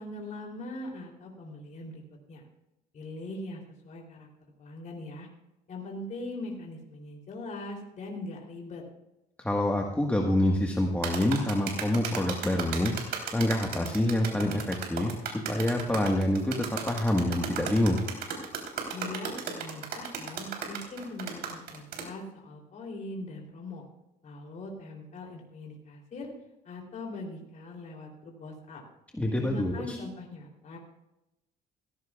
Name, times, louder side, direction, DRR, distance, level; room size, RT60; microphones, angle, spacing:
voice 1, 0.0-2.0 2.3-2.4 2.9-4.3 4.6-5.3 5.7-8.8 18.9-23.8 24.2-26.3 26.6-28.8 29.4-30.8, left 2 dB, 50° left, -1 dB, 3.3 m, -41 dB
voice 2, 9.4-12.9 13.3-18.0 29.2-30.0, left 1 dB, 10° left, 0 dB, 1.5 m, -27 dB
sound 1, 11.0-22.1, right 6 dB, 70° right, 3.7 m, -35 dB
17.0 x 15.5 x 2.4 m, 0.90 s
cardioid pair, 110°, 17 cm